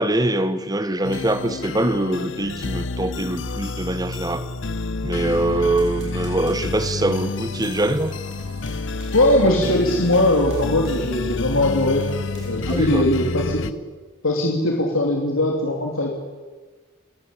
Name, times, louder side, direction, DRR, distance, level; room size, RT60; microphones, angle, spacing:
voice 1, 0.0-4.5 5.0-8.2 12.6-13.1, right 1 dB, 20° right, 1.2 m, -23 dB
sound 1, 1.0-13.7, left 3 dB, 65° left, 0.9 m, -29 dB
sound 2, 5.8-13.2, right 1 dB, 60° right, 7.5 m, -44 dB
voice 2, 9.1-12.1 12.4-13.7 14.2-16.1, left 1 dB, 85° left, 3.2 m, -20 dB
30.0 x 16.5 x 8.8 m
head